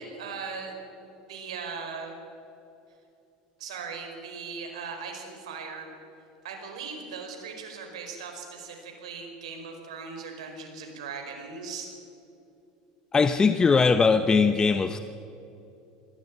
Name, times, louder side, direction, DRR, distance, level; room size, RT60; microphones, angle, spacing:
voice 1, 0.0-2.2 3.6-5.9 6.4-11.9, right 5 dB, 90° right, 3 dB, 5.0 m, -39 dB
voice 2, 13.1-15.0, left 5 dB, 20° left, 10 dB, 0.9 m, -20 dB
21.0 x 16.0 x 9.5 m, 2.8 s
supercardioid pair, 105°, 3 cm